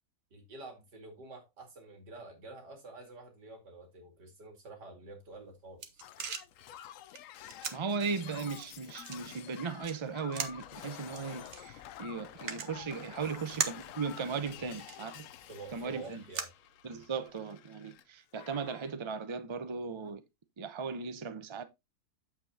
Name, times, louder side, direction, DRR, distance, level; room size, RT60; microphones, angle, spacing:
voice 1, 0.3-6.0 13.1-13.3 14.5-15.0 15.5-16.5, right 2 dB, 80° right, 3.0 m, -49 dB
sound 1, 5.2-17.3, right 6 dB, 50° right, 1.2 m, -43 dB
Shatter, 6.0-18.0 18.3-18.9 20.0-20.1, left 12 dB, 70° left, 0.8 m, -50 dB
voice 2, 7.7-15.3 15.7-16.2 16.8-20.2 20.6-21.6, right 5 dB, 30° right, 0.5 m, -37 dB
8.5 x 7.3 x 2.8 m
omnidirectional pair, 1.8 m